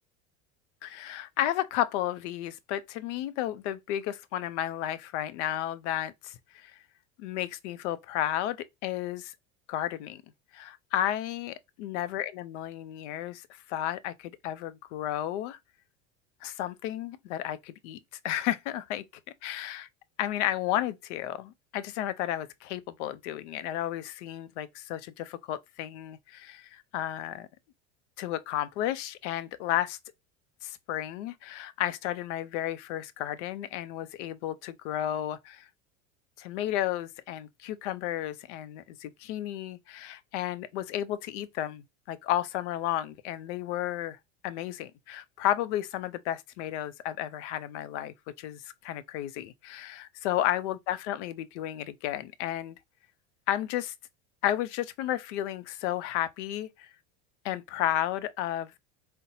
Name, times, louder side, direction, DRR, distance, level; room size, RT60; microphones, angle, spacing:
voice 1, 0.8-6.8 7.2-9.3 9.7-10.2 10.5-15.6 16.4-18.0 18.2-19.1 19.4-19.9 20.2-27.5 28.2-30.0 30.6-35.7 36.4-44.2 44.4-52.8 53.5-53.9 54.4-56.9 57.4-58.8, left 12 dB, 75° left, 0.5 m, -33 dB
4.0 x 2.1 x 2.7 m
supercardioid pair, 105°, 36 cm